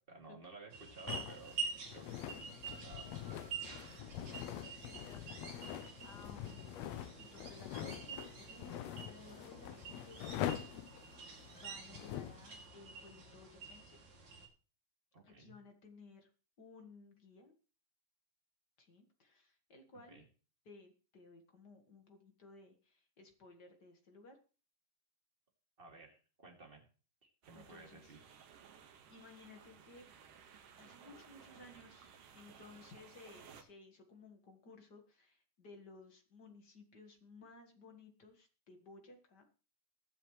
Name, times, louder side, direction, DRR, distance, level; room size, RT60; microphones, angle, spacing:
voice 1, 0.1-1.6 1.9-3.6 11.9-12.0 15.1-15.6 20.1-20.2 25.8-26.8 27.2-28.2, right 3 dB, 20° right, 1 dB, 2.3 m, -55 dB
sound 1, 0.7-14.5, right 5 dB, 55° right, 3.8 m, -48 dB
sound 2, 1.1-12.4, left 11 dB, 85° left, 1.5 m, -44 dB
voice 2, 4.2-6.9 7.2-14.0 15.2-16.3 16.6-17.5 18.8-20.2 20.6-24.4 27.5-28.2 29.1-30.1 30.8-39.5, left 3 dB, 40° left, 5 dB, 1.6 m, -58 dB
sound 3, 27.4-33.6, right 7 dB, 75° right, 2.9 m, -59 dB
22.0 x 7.6 x 3.2 m, 0.37 s
omnidirectional pair, 3.9 m